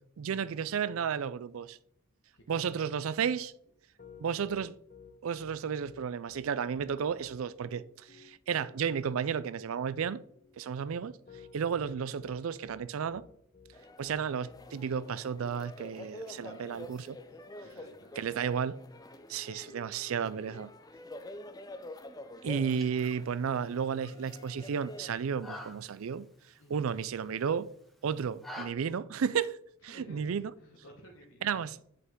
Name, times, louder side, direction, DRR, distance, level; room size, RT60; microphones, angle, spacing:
voice 1, 0.2-1.8 2.5-3.5 4.2-4.8 5.2-10.2 10.6-11.2 11.5-13.2 14.0-17.2 18.2-18.8 19.3-20.7 22.4-26.3 26.7-27.7 28.0-29.6 29.8-30.5 31.4-31.8, right 7 dB, 85° right, 0.4 m, -33 dB
voice 2, 2.3-2.9 16.3-16.9 17.6-18.5 26.6-26.8 29.9-30.3 30.6-31.5, equal, 75° left, 1.3 m, -54 dB
Piano, 3.6-17.9, left 6 dB, 40° left, 0.9 m, -55 dB
sound 1, 13.7-25.1, left 1 dB, 20° left, 0.5 m, -48 dB
sound 2, 22.5-28.7, left 1 dB, ahead, 0.9 m, -50 dB
8.3 x 5.6 x 3.7 m
head